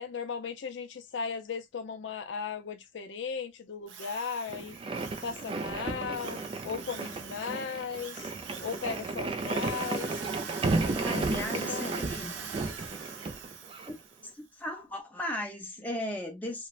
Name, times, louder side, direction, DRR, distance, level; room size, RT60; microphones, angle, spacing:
voice 1, 0.0-4.7 5.2-6.4 6.6-8.3 8.6-10.1 10.4-11.2 11.7-12.0, left 6 dB, 75° left, 0.4 m, -37 dB
Drill, 3.9-14.3, right 6 dB, 85° right, 0.6 m, -44 dB
sound 1, 4.5-13.9, right 3 dB, 30° right, 0.3 m, -34 dB
voice 2, 10.9-12.4 13.9-14.0 14.2-16.7, left 1 dB, 10° left, 0.7 m, -37 dB
3.0 x 2.1 x 2.3 m
head